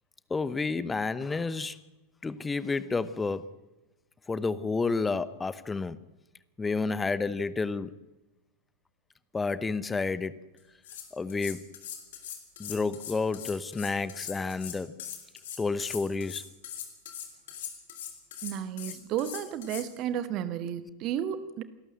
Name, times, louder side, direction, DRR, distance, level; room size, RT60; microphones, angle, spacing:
voice 1, 0.3-1.8 2.2-3.5 4.3-6.0 6.6-8.0 9.3-10.4 11.1-11.6 12.6-14.9 15.6-16.5, left 4 dB, 15° left, 0.8 m, -30 dB
sound 1, 10.6-10.7 10.8-19.9, left 9 dB, 55° left, 3.2 m, -41 dB
voice 2, 18.4-21.6, right 10 dB, 40° right, 1.3 m, -32 dB
28.0 x 12.5 x 7.6 m
figure-of-eight pair, 90°, 0 cm